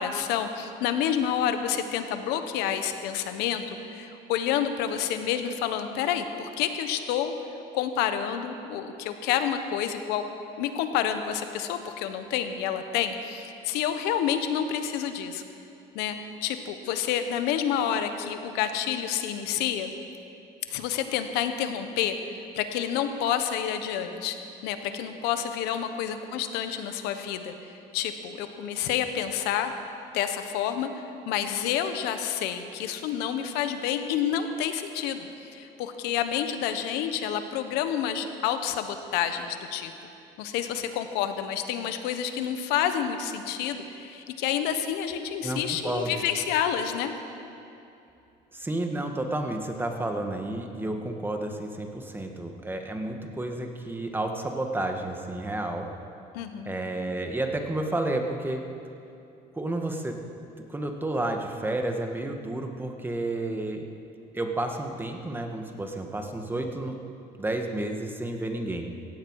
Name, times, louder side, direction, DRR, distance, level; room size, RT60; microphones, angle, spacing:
voice 1, 0.0-7.3 7.7-10.3 10.6-15.4 15.9-19.9 20.7-22.2 22.5-24.4 24.6-27.5 27.9-29.7 30.1-30.9 31.3-35.3 35.5-39.9 40.4-47.1 56.3-56.7, left 9 dB, 90° left, 8 dB, 1.1 m, -29 dB
voice 2, 45.4-46.2 48.5-55.9 56.6-58.6 59.5-60.2 60.7-63.9 64.3-67.0 67.4-68.9, right 2 dB, 10° right, 4 dB, 1.5 m, -31 dB
17.0 x 15.5 x 4.8 m, 2.7 s
cardioid pair, 110°, 16 cm